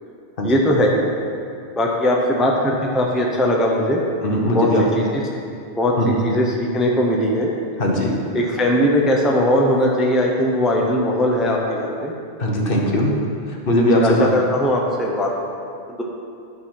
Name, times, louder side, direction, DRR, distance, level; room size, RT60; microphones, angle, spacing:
voice 1, 0.4-1.1 1.8-4.0 4.5-4.7 5.0-5.2 5.8-5.9 6.2-7.5 8.3-12.1 14.0-15.3 15.9-16.0, left 1 dB, ahead, -2 dB, 0.7 m, -19 dB
voice 2, 4.2-4.8 6.0-6.2 7.8-8.1 12.4-13.1 13.7-14.3, equal, 55° left, -1 dB, 1.2 m, -19 dB
11.5 x 4.0 x 5.9 m, 2.4 s
omnidirectional pair, 1.2 m